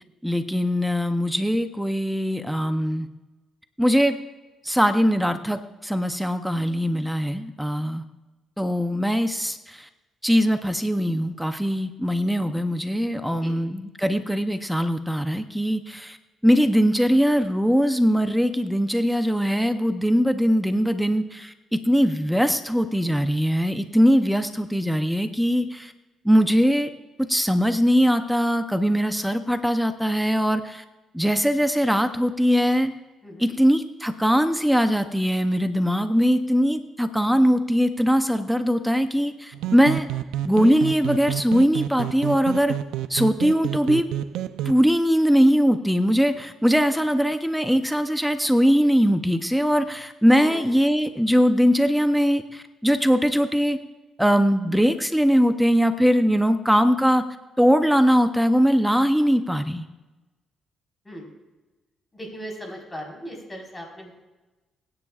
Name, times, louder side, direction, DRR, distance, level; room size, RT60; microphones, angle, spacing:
voice 1, 0.2-3.1 3.8-4.2 4.6-8.0 8.6-9.9 10.2-16.2 16.4-25.9 26.2-26.9 27.2-30.8 31.1-32.9 33.4-40.1 40.5-42.7 43.1-44.0 44.7-53.8 54.2-57.2 57.6-59.9, equal, ahead, 8 dB, 0.6 m, -21 dB
voice 2, 33.2-33.5 50.3-50.6 61.0-61.3 62.1-64.1, equal, 15° left, 0 dB, 4.3 m, -38 dB
sound 1, 39.5-44.7, right 11 dB, 90° right, 0.4 m, -30 dB
24.0 x 9.8 x 2.4 m, 1.1 s
cardioid pair, 90°, 0 cm